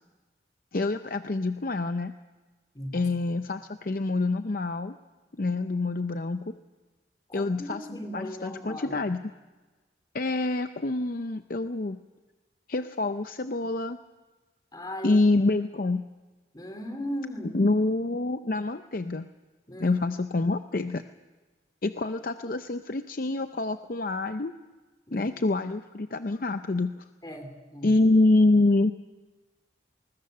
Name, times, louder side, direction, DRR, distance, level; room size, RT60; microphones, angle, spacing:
voice 1, 0.7-2.1 2.9-5.0 5.4-6.5 7.3-9.2 10.1-12.0 12.7-14.0 15.0-16.0 17.5-19.3 19.8-21.0 21.8-24.5 25.1-27.1 27.8-28.9, left 2 dB, 50° left, 9 dB, 0.6 m, -26 dB
voice 2, 2.7-3.1 7.3-9.0 14.7-15.2 16.5-17.6 19.7-20.0 25.1-25.3 27.2-27.9, equal, 20° left, 6 dB, 3.2 m, -37 dB
25.5 x 20.5 x 6.8 m, 1.3 s
head